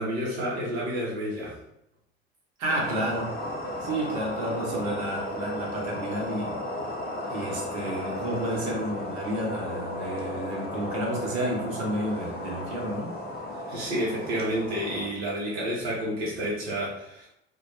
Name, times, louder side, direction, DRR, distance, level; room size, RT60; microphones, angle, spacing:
voice 1, 0.0-1.6 13.7-17.3, equal, 90° right, -5 dB, 0.8 m, -30 dB
voice 2, 2.6-3.4 3.8-6.6 7.3-13.1, right 1 dB, 65° right, -2 dB, 0.9 m, -31 dB
sound 1, 2.7-15.1, left 1 dB, 30° left, 0.7 m, -34 dB
2.2 x 2.2 x 2.8 m, 0.78 s
hypercardioid pair, 65°, 31 cm